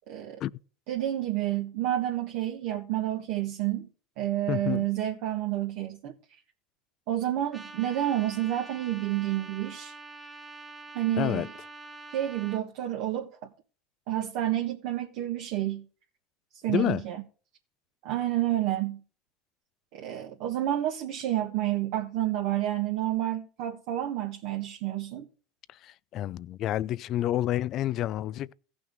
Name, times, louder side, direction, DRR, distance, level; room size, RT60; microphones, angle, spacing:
voice 1, 0.1-0.4 0.9-3.9 4.2-6.2 7.1-9.9 10.9-11.5 12.1-13.5 14.1-15.8 16.6-17.2 18.0-19.0 19.9-25.3, right 13 dB, 70° right, 1.5 m, -29 dB
voice 2, 4.5-4.8 11.2-11.5 16.7-17.0 25.8-28.5, left 13 dB, 50° left, 0.5 m, -29 dB
Trumpet, 7.5-12.6, right 3 dB, 15° right, 1.6 m, -45 dB
17.0 x 6.2 x 3.7 m
hypercardioid pair, 90°, 0 cm